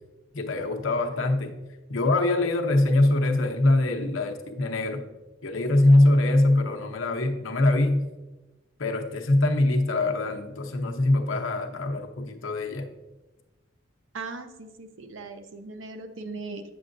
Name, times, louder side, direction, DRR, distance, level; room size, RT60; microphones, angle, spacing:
voice 1, 0.3-1.6 1.9-5.0 5.4-8.1 8.8-12.9, left 2 dB, 75° left, 3 dB, 0.8 m, -23 dB
voice 2, 14.1-16.7, right 3 dB, 70° right, 8 dB, 0.6 m, -39 dB
8.4 x 6.8 x 2.6 m, 1.1 s
head